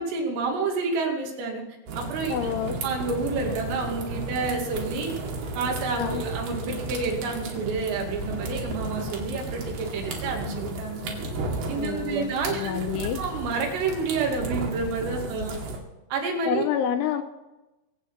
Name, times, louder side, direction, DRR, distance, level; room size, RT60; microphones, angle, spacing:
voice 1, 0.0-1.6 2.0-2.4 2.7-5.1 5.6-11.2 11.7-12.7 13.2-15.6 16.1-16.6, right 4 dB, 75° right, 1 dB, 5.0 m, -29 dB
sound 1, 1.9-15.8, right 2 dB, 55° right, 4.1 m, -34 dB
voice 2, 2.3-2.8 6.0-6.2 11.8-13.2 16.5-17.2, left 9 dB, 80° left, 7 dB, 2.9 m, -28 dB
23.5 x 8.6 x 6.1 m, 1.0 s
omnidirectional pair, 6.0 m